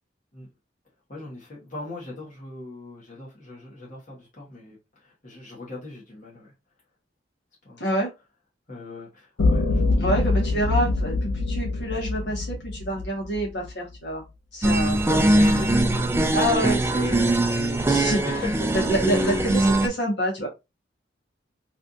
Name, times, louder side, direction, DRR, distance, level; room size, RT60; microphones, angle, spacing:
voice 1, 1.1-6.5 7.6-7.9 8.7-10.1 14.6-14.7 15.0-15.9 16.3-16.5 17.4-19.4, left 2 dB, 45° left, 1.3 m, -38 dB
voice 2, 7.8-8.1 10.0-14.2 14.5-15.0 15.4-15.7 16.3-17.3 17.9-18.4 18.7-20.5, right 1 dB, 65° left, 1.4 m, -27 dB
sound 1, 9.4-13.7, left 3 dB, 85° left, 0.4 m, -24 dB
sound 2, 14.6-19.9, right 1 dB, 15° right, 0.3 m, -21 dB
3.2 x 2.6 x 2.6 m
head